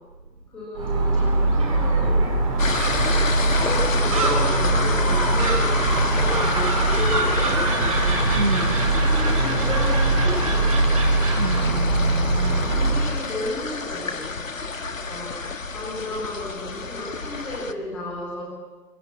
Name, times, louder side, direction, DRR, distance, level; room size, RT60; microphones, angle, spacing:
voice 1, 0.5-2.5 3.4-8.2 9.0-11.0 12.7-14.5 15.1-18.4, left 1 dB, ahead, -4 dB, 1.6 m, -33 dB
Gull seagull, 0.7-13.2, right 2 dB, 20° right, 3.0 m, -21 dB
sound 1, 2.6-17.7, left 4 dB, 50° left, 1.7 m, -30 dB
voice 2, 8.3-8.9 11.4-12.8 14.8-15.1, right 3 dB, 35° right, 10 dB, 1.3 m, -29 dB
26.0 x 23.0 x 8.4 m, 1.3 s
figure-of-eight pair, 160°, 50 cm